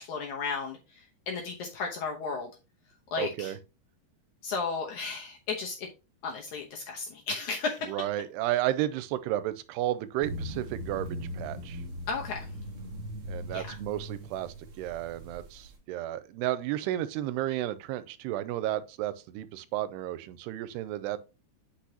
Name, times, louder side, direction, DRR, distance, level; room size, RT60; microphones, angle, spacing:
voice 1, 0.0-2.5 3.1-3.5 4.4-5.9 6.2-7.9 12.1-12.4 13.5-13.8, left 4 dB, 70° left, 1.9 m, -34 dB
voice 2, 3.2-3.6 7.9-11.8 13.3-21.2, right 13 dB, 90° right, 2.6 m, -32 dB
sound 1, 10.2-15.7, equal, 50° right, 1.8 m, -39 dB
8.3 x 6.0 x 2.8 m
omnidirectional pair, 4.7 m